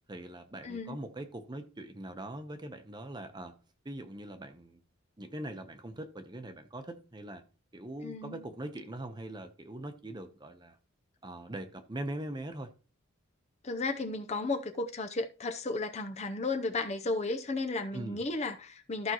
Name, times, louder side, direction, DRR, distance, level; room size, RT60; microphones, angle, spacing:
voice 1, 0.1-3.5 3.8-4.8 5.2-7.4 7.7-10.8 11.2-12.7 17.9-18.2, right 1 dB, 20° right, 0.9 m, -42 dB
voice 2, 0.6-1.0 8.0-8.5 13.6-19.1, left 3 dB, 35° left, 0.7 m, -34 dB
14.0 x 5.3 x 3.0 m
head